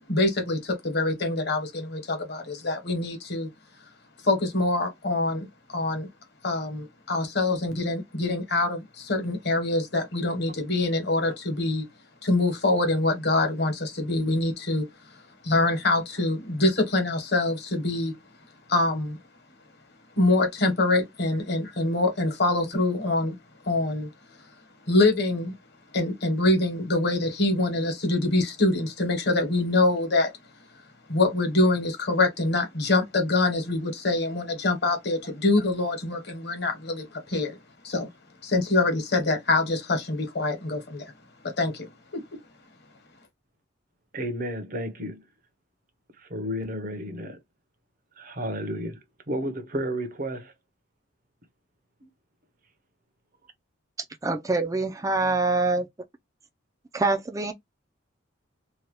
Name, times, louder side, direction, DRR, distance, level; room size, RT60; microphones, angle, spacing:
voice 1, 0.1-3.5 4.2-6.1 6.4-11.8 12.2-14.9 15.4-18.1 18.7-19.2 20.2-23.4 23.6-24.1 24.9-25.5 25.9-30.3 31.1-37.6 37.8-38.1 38.4-41.0 41.6-42.2, left 2 dB, 55° left, 1.1 m, -25 dB
voice 2, 44.1-45.2 46.2-47.4 48.2-50.5 52.0-52.1, equal, 40° right, 0.7 m, -32 dB
voice 3, 54.2-55.9 56.9-57.5, right 3 dB, 15° right, 0.4 m, -25 dB
2.8 x 2.3 x 3.1 m
head